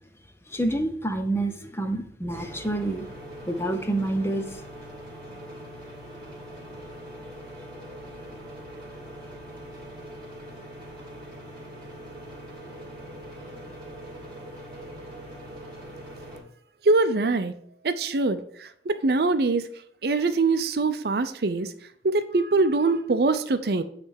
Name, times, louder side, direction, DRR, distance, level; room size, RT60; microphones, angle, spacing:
voice 1, 0.5-3.1 3.5-4.6, right 1 dB, 15° left, 6 dB, 0.7 m, -28 dB
sound 1, 2.3-16.4, equal, 25° right, 2.8 m, -42 dB
voice 2, 16.8-17.5 17.8-19.7 20.0-21.7 22.0-23.8, right 3 dB, 60° right, 10 dB, 0.6 m, -23 dB
8.8 x 3.3 x 6.5 m, 0.64 s
head